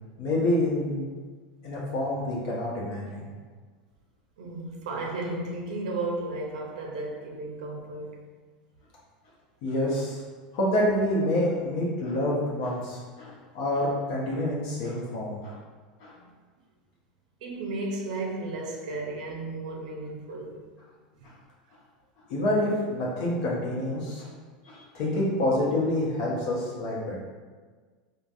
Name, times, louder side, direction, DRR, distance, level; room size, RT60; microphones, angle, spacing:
voice 1, 0.2-1.1 1.6-3.3 9.6-10.2 10.5-15.6 16.0-16.1 22.3-24.3 24.6-27.2, left 1 dB, 65° left, 0.8 m, -27 dB
voice 2, 4.4-8.2 17.4-20.6 21.2-21.3 23.3-23.4, right 2 dB, 80° right, 0.5 m, -34 dB
3.3 x 2.2 x 2.6 m
hypercardioid pair, 105°, 4 cm